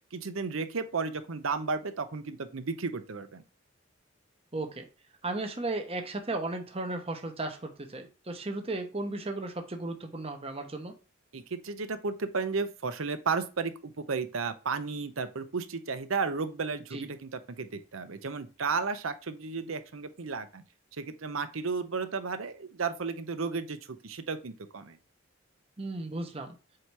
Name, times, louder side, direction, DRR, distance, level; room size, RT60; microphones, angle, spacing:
voice 1, 0.1-3.4 11.3-20.6 21.0-25.0, right 4 dB, 90° right, 10 dB, 0.7 m, -33 dB
voice 2, 4.5-4.8 5.2-10.9 16.9-17.0 25.8-26.5, right 2 dB, 30° right, 4 dB, 0.9 m, -35 dB
7.7 x 2.8 x 4.7 m, 0.34 s
head